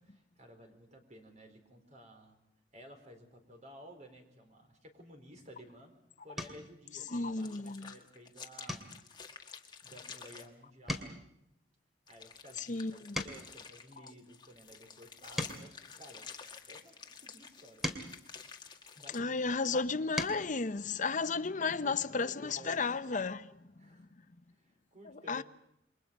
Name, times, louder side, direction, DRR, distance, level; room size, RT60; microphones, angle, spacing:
voice 1, 0.1-2.4 2.7-5.9 6.2-8.8 9.6-11.2 12.1-16.3 16.7-18.0 18.9-20.2 21.7-22.9 23.8-24.1 24.5-25.4, equal, 40° right, 4.5 m, -55 dB
sound 1, 5.5-5.8 6.3-6.7 7.2-7.6 7.9-8.1 8.6-10.5 10.7-13.7 14.3-16.8 17.4-19.3 19.8-20.5 21.9-22.0 22.3-22.5, left 1 dB, ahead, 2.5 m, -43 dB
voice 2, 7.1-7.9 12.6-13.3 19.1-23.5 25.3-25.4, left 4 dB, 45° left, 0.8 m, -33 dB
sound 2, 7.1-10.5 12.1-19.2, left 6 dB, 25° left, 1.7 m, -50 dB
28.5 x 23.5 x 5.3 m
head